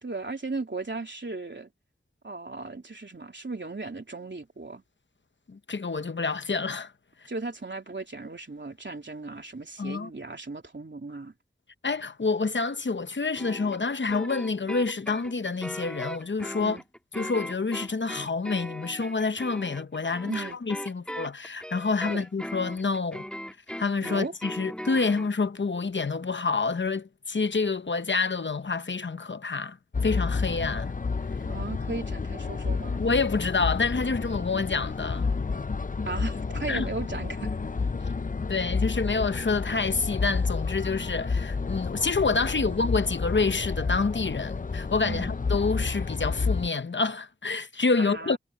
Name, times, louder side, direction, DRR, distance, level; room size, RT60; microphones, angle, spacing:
voice 1, 0.0-1.7 2.2-4.8 7.3-11.3 16.6-16.8 20.2-20.6 22.1-22.3 24.0-24.3 31.5-33.0 36.1-37.5 42.3-42.8 45.0-45.4 48.0-48.4, right 3 dB, 65° right, 3.4 m, -36 dB
voice 2, 5.5-6.9 9.8-10.1 11.8-16.8 17.2-23.3 23.8-29.8 30.0-30.9 33.0-35.3 36.7-36.8 38.5-48.4, left 4 dB, 65° left, 0.8 m, -28 dB
sound 1, 13.4-25.3, equal, 5° left, 1.7 m, -39 dB
sound 2, 29.9-46.7, left 4 dB, 40° left, 0.5 m, -30 dB
wide cardioid pair, 40°, 20 cm